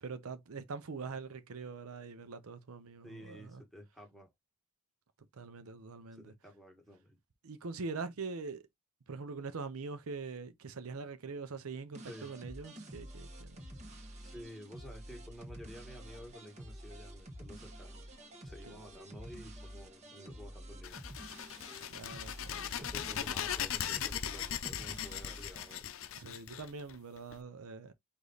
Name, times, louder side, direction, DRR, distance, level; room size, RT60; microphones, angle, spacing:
voice 1, 0.0-3.6 5.3-6.3 7.4-8.6 9.1-13.6 13.9-14.1 18.7-18.8 21.9-22.8 26.2-27.9, right 4 dB, 75° right, 0.6 m, -43 dB
voice 2, 3.0-4.3 6.1-7.2 12.0-12.3 14.2-18.0 18.4-21.0 22.7-25.9, equal, ahead, 1.6 m, -51 dB
sound 1, 11.9-25.7, equal, 30° right, 1.2 m, -49 dB
sound 2, 20.8-27.3, left 9 dB, 65° left, 0.6 m, -39 dB
5.0 x 2.6 x 4.0 m
head